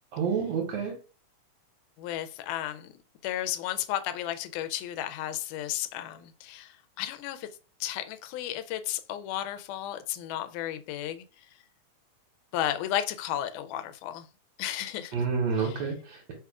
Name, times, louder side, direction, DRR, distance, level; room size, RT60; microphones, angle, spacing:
voice 1, 0.1-0.9 15.1-16.3, right 5 dB, 70° right, 2.0 m, -29 dB
voice 2, 2.0-2.9 3.2-7.5 7.8-11.2 12.5-14.3 14.6-15.3 15.6-15.9, left 12 dB, 85° left, 2.0 m, -33 dB
4.7 x 2.4 x 4.6 m
omnidirectional pair, 3.5 m